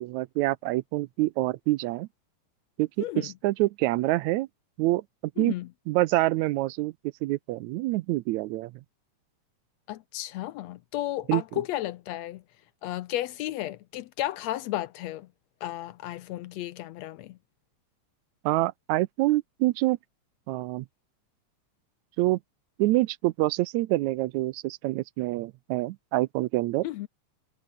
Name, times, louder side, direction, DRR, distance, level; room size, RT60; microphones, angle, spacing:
voice 1, 0.0-2.1 2.8-4.5 4.8-5.0 5.4-5.5 5.9-6.9 7.2-8.7 11.3-11.4 18.5-20.0 20.5-20.9 22.2-22.4 22.8-26.9, right 18 dB, 80° right, 1.9 m, -26 dB
voice 2, 3.0-3.3 5.4-5.7 9.9-12.4 12.8-15.3 15.6-17.4 26.8-27.1, left 14 dB, 75° left, 1.7 m, -33 dB
omnidirectional pair, 3.3 m